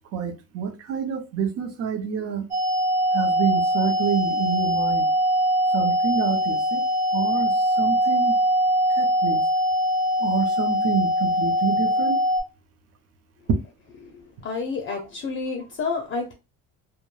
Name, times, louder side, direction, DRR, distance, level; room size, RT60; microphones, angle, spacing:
voice 1, 0.1-2.5 3.1-5.1 5.7-6.8 7.1-8.4 9.0-9.4 10.2-12.2, right 7 dB, 45° right, 0.5 m, -27 dB
sound 1, 2.5-12.4, equal, 30° right, 0.9 m, -22 dB
voice 2, 14.4-16.3, left 4 dB, 35° left, 0.4 m, -29 dB
2.3 x 2.1 x 3.0 m
cardioid pair, 135°, 35 cm